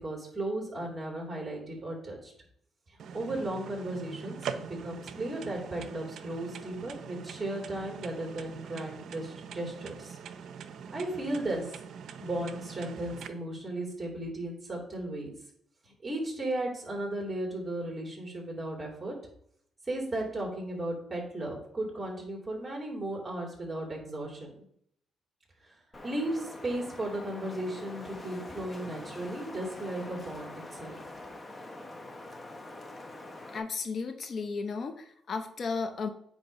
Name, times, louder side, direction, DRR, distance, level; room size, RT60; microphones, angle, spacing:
voice 1, 0.0-2.3 3.1-10.2 10.9-11.6 12.2-15.3 16.0-19.1 19.9-24.5 26.0-31.0, right 1 dB, 20° right, -3 dB, 2.9 m, -35 dB
sound 1, 3.0-13.3, right 7 dB, 70° right, 0.5 m, -43 dB
Wind, 25.9-33.6, left 2 dB, 25° left, 0.9 m, -44 dB
voice 2, 33.5-36.1, left 4 dB, 50° left, 6 dB, 0.6 m, -34 dB
8.7 x 3.0 x 5.2 m, 0.69 s
cardioid pair, 90°, 0 cm